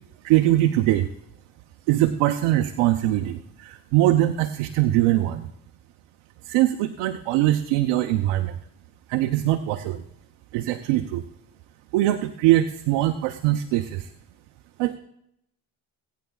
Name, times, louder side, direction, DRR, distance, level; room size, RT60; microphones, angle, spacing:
voice 1, 0.2-1.1 1.9-5.5 6.5-8.5 9.1-10.0 10.5-11.2 11.9-14.1 14.8-15.0, right 14 dB, 80° right, 6 dB, 0.8 m, -22 dB
21.0 x 9.2 x 2.3 m, 0.75 s
supercardioid pair, 60°, 46 cm